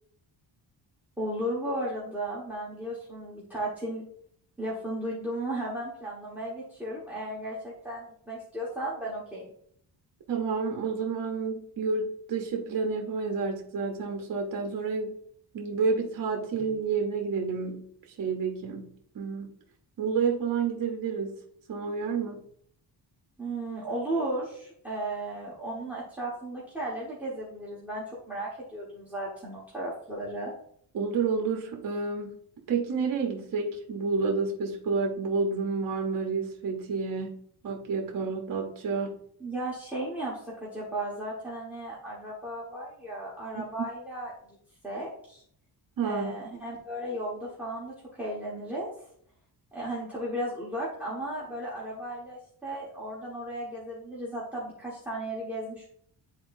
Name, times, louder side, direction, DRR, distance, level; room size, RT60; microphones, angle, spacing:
voice 1, 1.2-4.0 4.6-9.5 23.4-30.5 39.4-44.6 44.8-45.4 46.0-48.9 49.7-55.9, right 1 dB, 5° right, -7 dB, 1.4 m, -35 dB
voice 2, 10.3-15.2 15.5-17.9 18.2-19.5 20.0-21.4 21.7-22.4 30.9-32.4 32.7-37.4 37.6-39.2 43.5-43.9 46.0-46.3, right 5 dB, 50° right, 1 dB, 1.0 m, -30 dB
10.0 x 3.9 x 2.6 m, 0.64 s
wide cardioid pair, 165°, 42 cm